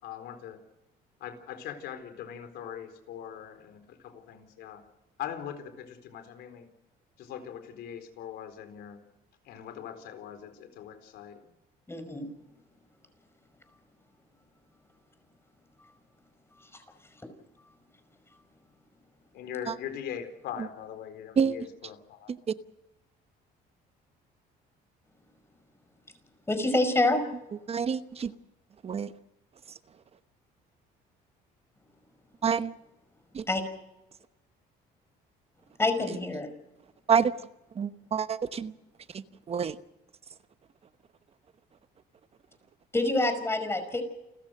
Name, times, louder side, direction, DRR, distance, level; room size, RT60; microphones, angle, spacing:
voice 1, 0.0-0.6 1.2-4.8 5.2-6.7 7.2-9.0 9.4-11.4 19.3-22.3, left 9 dB, 80° left, 8 dB, 4.2 m, -41 dB
voice 2, 11.9-12.3 26.5-27.2 33.5-33.6 35.8-36.5 42.9-44.0, left 2 dB, 15° left, 8 dB, 5.3 m, -26 dB
voice 3, 27.7-28.3 28.8-29.1 32.4-32.7 33.3-33.5 37.1-37.3 37.7-38.7 39.1-39.8, right 6 dB, 35° right, 12 dB, 1.0 m, -28 dB
29.5 x 14.5 x 6.5 m, 0.96 s
cardioid pair, 110°, 17 cm